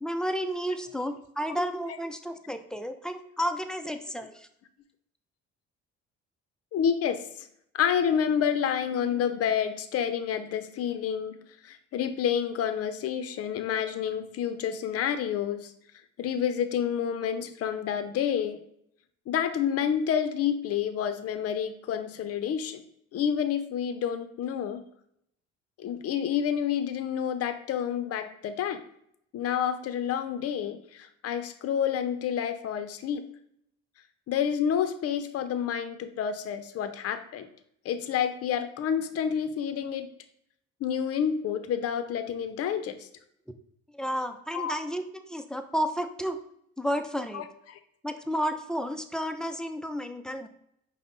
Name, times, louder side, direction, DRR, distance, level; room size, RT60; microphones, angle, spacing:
voice 1, 0.0-4.5 43.9-46.4 46.8-47.4 48.0-50.5, equal, ahead, 7 dB, 0.4 m, -32 dB
voice 2, 6.7-7.5 7.7-11.4 11.6-15.7 16.2-18.6 19.3-22.8 23.1-24.8 25.8-28.8 29.3-33.2 34.3-37.5 37.8-40.1 40.8-43.1 44.5-44.8 47.3-47.8, left 8 dB, 55° left, 10 dB, 0.5 m, -29 dB
5.2 x 2.1 x 3.8 m, 0.71 s
supercardioid pair, 75°, 29 cm